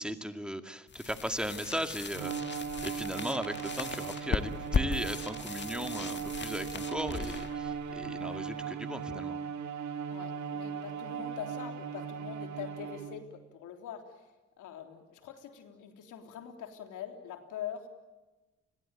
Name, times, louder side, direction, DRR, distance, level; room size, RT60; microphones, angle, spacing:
voice 1, 0.0-9.4, equal, 5° right, 7 dB, 2.2 m, -37 dB
sound 1, 0.9-8.6, left 5 dB, 35° left, 2.0 m, -37 dB
Bowed string instrument, 2.1-13.4, right 7 dB, 70° right, 2.1 m, -38 dB
voice 2, 10.1-14.3 14.6-17.9, left 9 dB, 85° left, 5 dB, 3.6 m, -43 dB
30.0 x 21.5 x 9.1 m, 1.2 s
cardioid pair, 90°, 30 cm